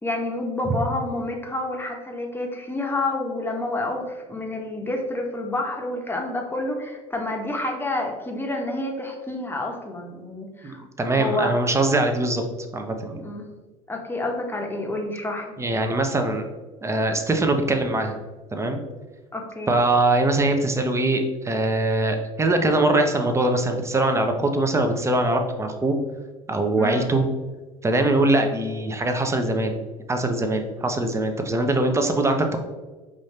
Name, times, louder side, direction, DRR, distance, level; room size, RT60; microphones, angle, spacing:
voice 1, 0.0-10.8 11.1-11.5 13.2-13.5 13.9-15.5 19.3-19.7 26.8-27.1, left 2 dB, 10° left, 1 dB, 0.9 m, -29 dB
voice 2, 10.6-12.5 12.7-13.2 15.6-16.5 16.8-18.2 18.5-18.8 19.7-26.0 26.5-27.3 27.8-29.8 30.1-32.6, right 2 dB, 15° right, 5 dB, 0.6 m, -22 dB
5.0 x 2.6 x 3.2 m, 1.2 s
hypercardioid pair, 80°, 18 cm